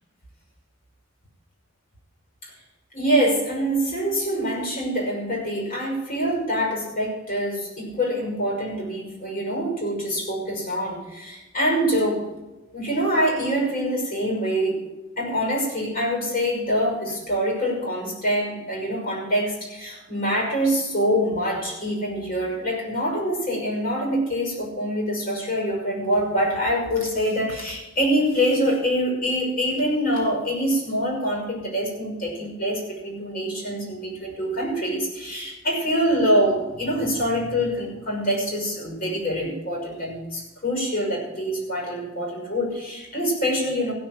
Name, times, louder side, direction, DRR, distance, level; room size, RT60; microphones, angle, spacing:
voice 1, 2.9-12.3 12.7-14.8 15.2-43.9, equal, 45° left, -1 dB, 6.2 m, -25 dB
16.0 x 7.1 x 7.6 m, 1.1 s
head